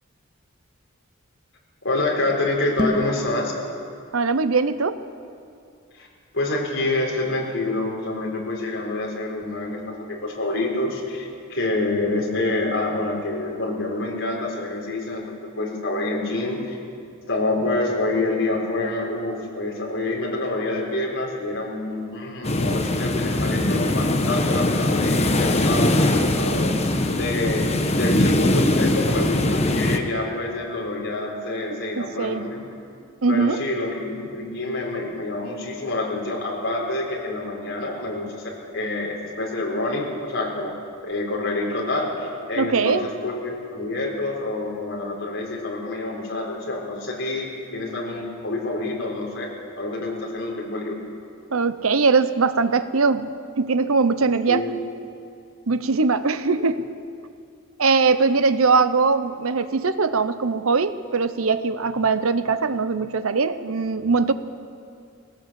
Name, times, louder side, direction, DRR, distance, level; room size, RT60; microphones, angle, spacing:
voice 1, 1.8-3.5 5.9-6.1 6.3-16.8 17.3-26.8 27.1-27.7 27.9-32.7 33.3-40.7 41.0-47.5 47.7-49.5 49.8-50.9 54.5-54.7, left 2 dB, 65° left, -3 dB, 4.3 m, -27 dB
sound 1, 2.7-3.2, equal, 20° right, 1.2 m, -25 dB
voice 2, 4.1-5.0 32.0-32.5 33.2-33.6 42.6-43.1 51.5-54.6 55.7-56.9 57.8-64.3, right 4 dB, 85° right, 12 dB, 0.9 m, -21 dB
sound 2, 22.4-30.0, left 1 dB, 30° left, 1.1 m, -21 dB
19.0 x 18.0 x 7.7 m, 2.4 s
head